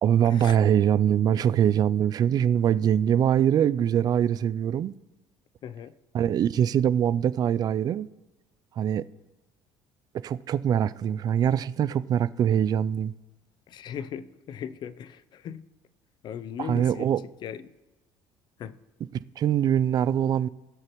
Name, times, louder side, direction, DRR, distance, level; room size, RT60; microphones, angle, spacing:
voice 1, 0.0-5.0 6.1-8.1 8.8-9.0 10.2-13.1 16.6-17.2 19.4-20.5, right 9 dB, 45° right, 0.3 m, -23 dB
voice 2, 5.6-5.9 13.7-15.6 16.2-17.1 17.4-17.7 18.6-18.8, left 8 dB, 55° left, 0.5 m, -38 dB
18.0 x 6.5 x 3.1 m
supercardioid pair, 95°, 9 cm